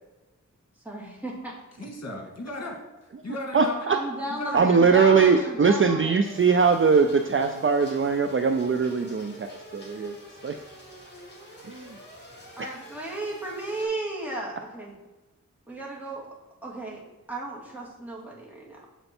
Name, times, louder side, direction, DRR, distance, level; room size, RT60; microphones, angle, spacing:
voice 1, 0.9-1.5 3.9-6.1 12.6-14.9 15.7-16.3 16.6-17.0 17.3-18.9, right 2 dB, 5° right, -4 dB, 2.0 m, -34 dB
voice 2, 1.8-2.8 3.2-3.8 4.4-4.6 5.0-5.4, left 2 dB, 55° left, 0 dB, 1.6 m, -36 dB
voice 3, 3.5-4.0 4.5-10.6 11.6-12.0 12.6-12.7, right 5 dB, 40° right, 7 dB, 0.5 m, -21 dB
sound 1, 6.2-13.9, equal, 35° left, 2.1 m, -47 dB
7.8 x 4.4 x 4.3 m, 1.2 s
wide cardioid pair, 55°, 32 cm